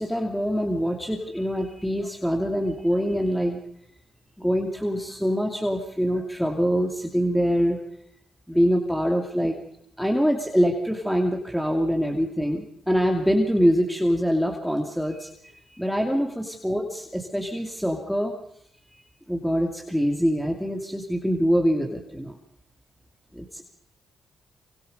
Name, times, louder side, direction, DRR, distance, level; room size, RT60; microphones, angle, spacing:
voice 1, 0.0-3.6 4.4-7.8 8.5-9.6 10.0-15.3 15.7-18.4 19.3-22.4 23.3-23.6, equal, ahead, 2 dB, 2.7 m, -24 dB
24.5 x 24.5 x 5.4 m, 0.73 s
supercardioid pair, 60°, 0 cm